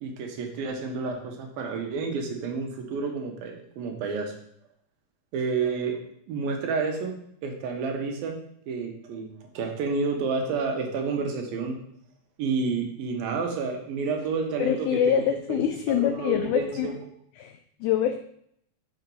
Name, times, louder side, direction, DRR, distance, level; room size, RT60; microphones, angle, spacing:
voice 1, 0.0-4.3 5.3-6.0 6.3-8.4 8.7-11.8 12.4-15.6 15.9-16.9, right 4 dB, 85° right, 2 dB, 3.0 m, -30 dB
voice 2, 14.6-16.9 17.4-18.2, left 9 dB, 85° left, 7 dB, 1.7 m, -25 dB
7.2 x 4.5 x 5.4 m, 0.70 s
omnidirectional pair, 4.0 m